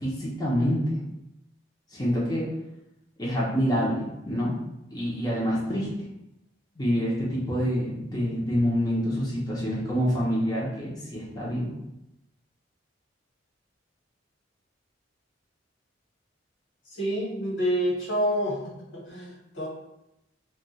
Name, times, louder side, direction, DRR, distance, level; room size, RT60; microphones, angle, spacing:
voice 1, 0.0-1.0 1.9-2.4 3.2-4.6 4.9-5.9 6.8-11.7, equal, 20° left, -6 dB, 0.7 m, -27 dB
voice 2, 16.9-19.7, equal, 80° left, -5 dB, 1.3 m, -28 dB
2.3 x 2.3 x 3.9 m, 0.87 s
head